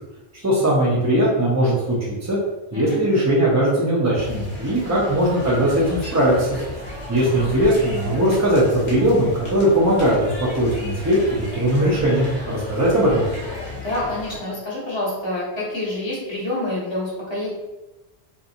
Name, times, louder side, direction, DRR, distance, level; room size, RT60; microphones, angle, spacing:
voice 1, 0.4-2.0 2.3-2.4 2.7-6.6 7.1-13.2, right 1 dB, 30° right, -6 dB, 0.3 m, -19 dB
sound 1, 4.1-14.4, left 2 dB, 65° left, 1.1 m, -34 dB
voice 2, 4.8-5.1 13.7-17.5, left 1 dB, 25° left, -7 dB, 1.0 m, -28 dB
2.7 x 2.5 x 2.5 m, 1.0 s
omnidirectional pair, 1.1 m